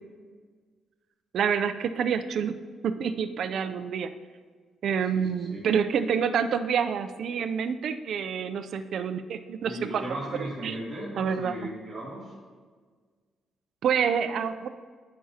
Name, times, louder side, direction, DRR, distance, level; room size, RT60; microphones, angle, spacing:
voice 1, 1.3-2.6 2.8-4.1 4.8-10.0 10.6-10.7 11.2-11.5 13.8-14.7, right 7 dB, 60° right, 10 dB, 0.4 m, -27 dB
voice 2, 5.1-5.6 9.6-12.3, right 1 dB, 15° right, -9 dB, 2.4 m, -37 dB
13.0 x 6.0 x 2.8 m, 1.6 s
cardioid pair, 140°, 0 cm